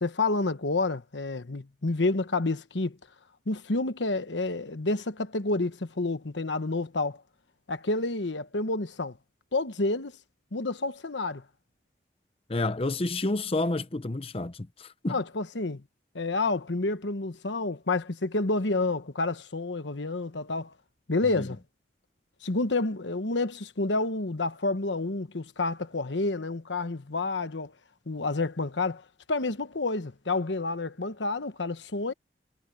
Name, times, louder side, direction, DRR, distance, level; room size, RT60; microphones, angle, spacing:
voice 1, 0.0-3.0 3.5-7.2 7.7-9.2 9.5-10.1 10.5-11.4 15.1-15.8 16.1-20.7 21.1-21.6 22.4-27.7 28.1-29.0 29.3-32.1, left 3 dB, 90° left, 1.2 m, -29 dB
voice 2, 12.5-15.2 21.4-21.5, left 2 dB, 35° left, 0.7 m, -29 dB
head